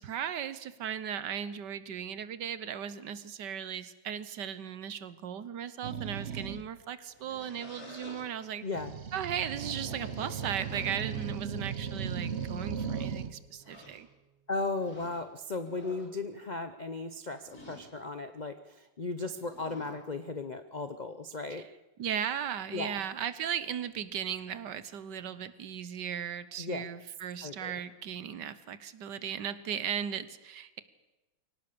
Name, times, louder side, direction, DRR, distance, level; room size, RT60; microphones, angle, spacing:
voice 1, 0.0-8.6 9.1-14.1 22.0-30.8, right 9 dB, 65° right, 14 dB, 1.5 m, -37 dB
sound 1, 5.8-6.7 8.7-13.4, right 6 dB, 45° right, 1.0 m, -37 dB
sound 2, 7.0-8.3 9.3-11.3 12.0-12.1 12.6-13.1 13.6-14.0 14.8-15.2 15.6-16.1 17.4-17.9 19.3-20.0, left 1 dB, 50° left, 3.6 m, -49 dB
voice 2, 8.6-8.9 14.5-21.7 22.7-23.0 26.6-26.9 27.4-27.7, left 3 dB, 70° left, 9 dB, 0.4 m, -36 dB
sound 3, 10.7-13.9, right 6 dB, 10° right, 4.7 m, -49 dB
24.0 x 18.0 x 6.8 m, 1.0 s
omnidirectional pair, 2.1 m